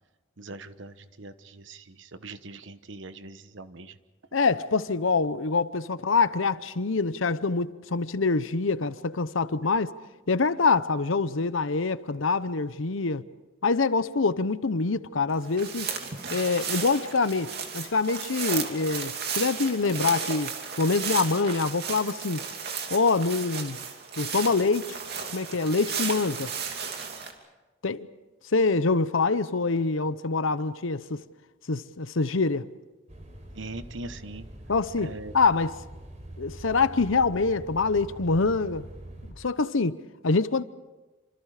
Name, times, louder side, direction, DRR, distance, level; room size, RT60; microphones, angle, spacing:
voice 1, 0.4-4.0 33.5-34.4 35.0-35.3, right 2 dB, 70° right, 1.1 m, -41 dB
voice 2, 4.3-9.9 10.3-13.2 13.6-15.9 16.3-22.5 22.9-23.8 24.2-25.0 25.3-26.5 27.8-28.1 28.5-31.2 31.7-32.7 34.7-35.7 36.4-38.9 39.4-40.6, left 4 dB, 80° left, 0.8 m, -25 dB
sound 1, 15.4-27.3, right 6 dB, 55° right, 2.8 m, -34 dB
sound 2, 33.1-39.3, right 1 dB, 35° right, 4.0 m, -44 dB
28.0 x 26.0 x 5.0 m
head